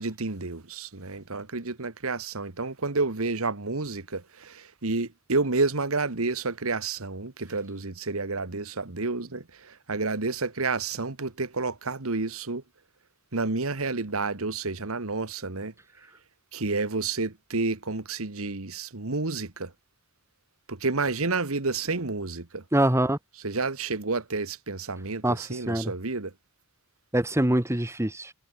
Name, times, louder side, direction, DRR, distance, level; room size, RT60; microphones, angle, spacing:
voice 1, 0.0-12.6 13.3-15.7 16.5-19.7 20.7-22.6 23.4-26.3, right 3 dB, 75° right, 1.6 m, -30 dB
voice 2, 22.7-23.2 25.2-25.9 27.1-28.3, right 1 dB, 15° right, 1.3 m, -24 dB
head